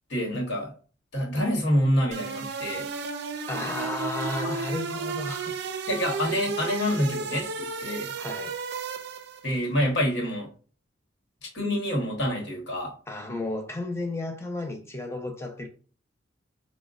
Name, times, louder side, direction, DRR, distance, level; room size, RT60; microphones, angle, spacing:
voice 1, 0.1-0.7 1.1-2.9 4.4-4.6 5.9-8.2 9.4-10.5 11.5-12.9, equal, 60° left, 1.1 m, -27 dB
sound 1, 2.1-9.5, right 4 dB, 55° right, 0.4 m, -33 dB
voice 2, 3.5-5.6 8.2-8.6 13.1-15.7, left 2 dB, 15° left, 0.6 m, -33 dB
5.0 x 2.1 x 2.4 m
head